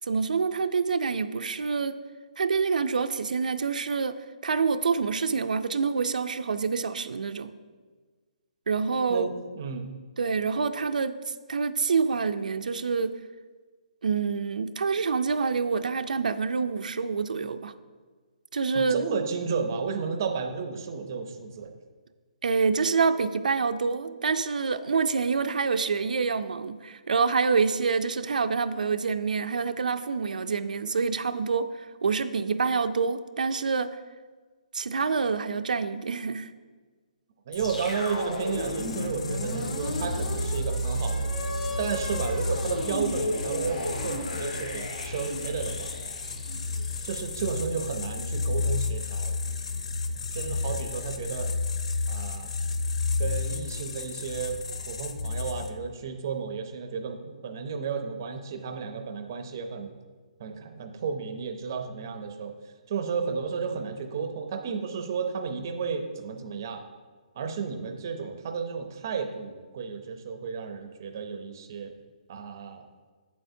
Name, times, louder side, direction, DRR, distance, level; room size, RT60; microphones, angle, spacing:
voice 1, 0.1-2.0 2.4-4.1 4.4-7.5 8.7-9.3 10.2-13.2 14.0-17.7 18.5-19.1 22.4-31.7 32.0-34.0 34.7-36.5, right 5 dB, 85° right, 9 dB, 0.4 m, -27 dB
voice 2, 9.1-9.9 18.7-21.7 37.5-41.4 41.8-45.9 47.0-49.4 50.3-51.5 52.1-52.5 53.2-54.6 54.9-59.9 60.4-62.5 62.9-66.8 67.4-71.9 72.3-72.8, right 5 dB, 25° right, 6 dB, 0.5 m, -33 dB
sound 1, 37.5-47.7, equal, 85° left, 1.6 m, -33 dB
sound 2, 37.5-55.9, left 4 dB, 45° left, 0.5 m, -33 dB
8.5 x 7.7 x 2.7 m, 1.4 s
hypercardioid pair, 180°, 4 cm